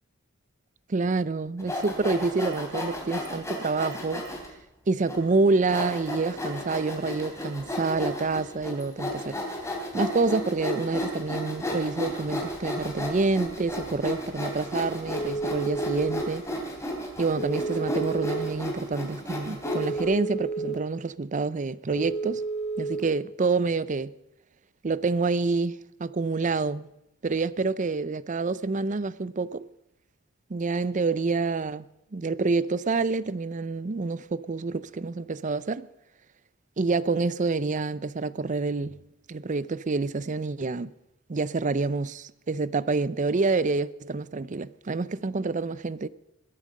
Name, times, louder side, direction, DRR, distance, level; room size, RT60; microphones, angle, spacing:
voice 1, 0.9-4.3 4.9-9.4 9.9-16.4 17.2-22.4 22.8-24.1 24.8-26.9 27.2-29.7 30.5-31.9 32.1-35.9 36.8-39.0 39.3-40.9 41.3-46.1, right 3 dB, 35° right, 0.5 m, -27 dB
Sawing, 1.6-4.5 5.1-5.2 5.7-20.0, left 1 dB, 15° left, 3.3 m, -33 dB
Telephone, 15.1-16.2 17.4-18.5 19.7-20.8 21.9-23.0, right 3 dB, 55° left, 2.9 m, -31 dB
21.0 x 9.0 x 6.5 m
head